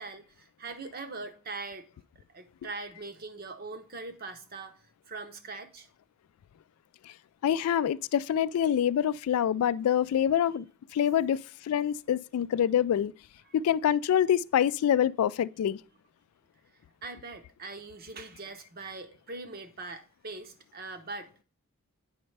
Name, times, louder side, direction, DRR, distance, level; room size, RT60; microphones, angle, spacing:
voice 1, 0.0-1.9 2.1-5.9 13.5-13.6 17.0-21.4, right 3 dB, 45° right, 0.8 m, -42 dB
voice 2, 7.4-10.7 10.9-13.1 13.5-15.8, left 9 dB, 85° left, 0.3 m, -26 dB
8.7 x 5.3 x 3.2 m
head